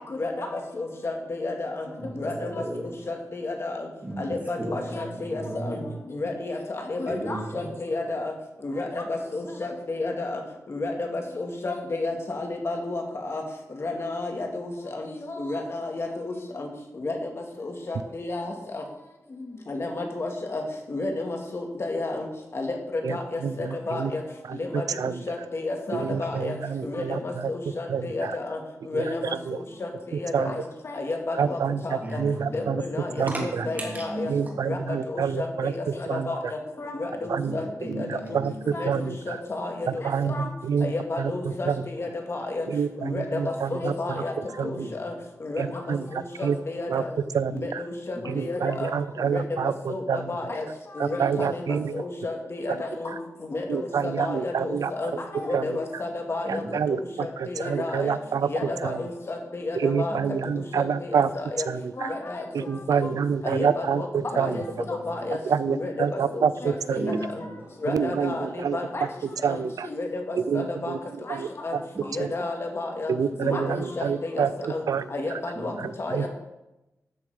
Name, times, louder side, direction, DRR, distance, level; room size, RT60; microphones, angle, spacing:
voice 1, 0.8-1.8 2.2-2.3 3.1-3.7 4.2-5.8 6.1-6.6 6.9-8.3 8.6-10.4 10.7-13.4 13.8-16.7 17.0-17.2 17.6-18.8 19.7-20.6 20.9-22.3 22.5-22.8 23.1-24.2 24.6-24.8 25.3-26.5 26.8-28.6 28.9-29.3 29.8-29.9 30.2-31.6 31.8-32.0 32.5-33.1 33.4-34.3 34.7-34.8 35.1-35.7 36.1-36.4 36.8-37.6 38.0-38.1 38.7-39.7 40.3-40.5 40.8-41.7 42.0-42.6 43.0-44.3 44.6-45.1 45.4-45.6 46.1-47.1 47.6-48.9 49.2-49.4 49.9-50.6 51.0-51.6 51.9-53.1 53.5-56.6 57.2-58.1 58.5-60.2 60.7-60.8 61.1-61.2 61.6-61.7 62.0-62.4 63.4-64.1 64.4-65.4 65.7-65.9 66.3-67.0 67.8-69.0 69.5-69.6 69.8-70.9 71.3-71.4 71.6-71.8 72.1-73.1 73.4-74.4 74.7-74.8 75.1-75.7 76.0-76.3, left 2 dB, 45° left, 2 dB, 2.2 m, -31 dB
voice 2, 2.0-3.0 4.0-5.9 7.1-7.7 26.0-26.3 26.8-27.0 32.0-32.8 33.1-34.5 37.2-38.8 44.8-44.9 48.1-48.2 56.4-56.7 60.1-60.3 64.3-65.3 67.0-67.7 75.5-75.8, right 1 dB, 30° right, -2 dB, 3.1 m, -36 dB
voice 3, 23.4-24.1 24.5-24.6 25.0-25.1 25.9-27.2 27.9-28.3 28.9-29.0 29.5-29.6 30.3-30.5 31.4-31.8 32.2-32.8 33.2-33.3 34.3-35.7 36.1-36.3 37.3-37.6 37.9-38.5 38.8-39.1 40.0-40.9 41.2-41.3 41.7-41.8 42.7-43.9 44.6-44.9 45.6-46.0 46.4-46.6 46.9-47.0 47.3-47.8 48.3-49.7 50.1-50.2 51.0-52.0 53.7-54.9 55.5-55.6 56.5-57.0 57.4-58.5 58.8-59.0 59.8-61.3 61.7-62.1 62.5-64.0 64.4-64.6 65.5-67.2 67.9-68.8 69.4-69.9 70.5-71.0 71.3-71.5 73.1-75.0 76.1-76.3, right 6 dB, 90° right, 15 dB, 0.5 m, -27 dB
13.0 x 7.1 x 5.1 m, 0.97 s
wide cardioid pair, 115°, 6 cm